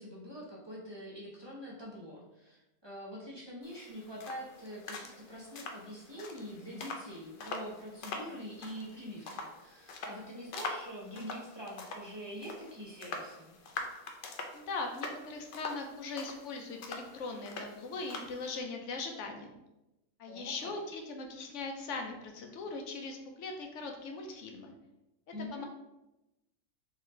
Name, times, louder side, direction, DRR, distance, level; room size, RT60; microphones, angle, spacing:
voice 1, 0.0-13.5 20.3-20.7 25.3-25.7, equal, 25° right, -6 dB, 0.6 m, -45 dB
sound 1, 3.6-18.6, left 3 dB, 85° left, 0.4 m, -44 dB
voice 2, 14.5-19.5 20.2-24.7 25.5-25.7, left 3 dB, 65° left, 3 dB, 0.8 m, -40 dB
3.8 x 3.1 x 3.1 m, 0.96 s
omnidirectional pair, 1.6 m